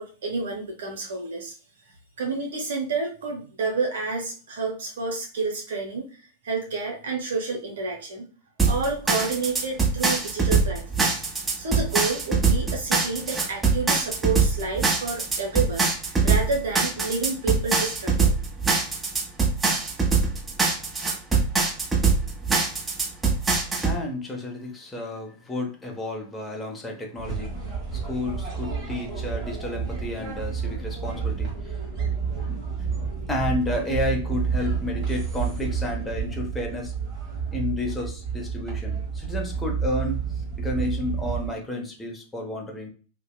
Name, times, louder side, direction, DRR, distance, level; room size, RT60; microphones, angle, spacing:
voice 1, 0.0-1.5 2.2-8.3 8.6-11.2 11.6-18.3, right 4 dB, 65° right, 1 dB, 0.6 m, -29 dB
sound 1, 8.6-24.0, right 4 dB, 10° right, 1.0 m, -22 dB
voice 2, 23.8-31.8 32.5-32.6 33.3-36.9 37.5-40.2 40.6-42.9, left 1 dB, 10° left, 0 dB, 0.7 m, -31 dB
sound 2, 27.2-41.5, right 6 dB, 35° right, 1.2 m, -30 dB
2.7 x 2.0 x 2.2 m, 0.38 s
figure-of-eight pair, 90°, 0 cm